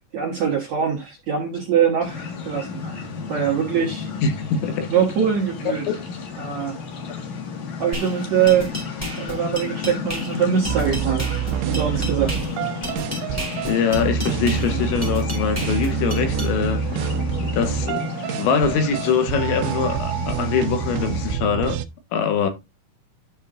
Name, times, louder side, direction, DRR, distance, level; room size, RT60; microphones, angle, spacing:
voice 1, 0.1-3.0 3.3-4.1 4.9-5.8 6.4-6.8 7.8-8.8 9.2-12.4, right 8 dB, 60° right, 1.9 m, -23 dB
sound 1, 2.0-21.4, left 5 dB, 55° left, 2.3 m, -33 dB
voice 2, 4.2-4.9 5.9-6.0 13.7-16.8 17.5-18.1 18.4-21.8 22.1-22.5, left 6 dB, 85° left, 3.5 m, -23 dB
sound 2, 7.9-16.5, equal, 5° left, 2.4 m, -33 dB
sound 3, 10.7-21.9, right 8 dB, 85° right, 2.9 m, -27 dB
12.0 x 5.4 x 2.5 m
omnidirectional pair, 5.2 m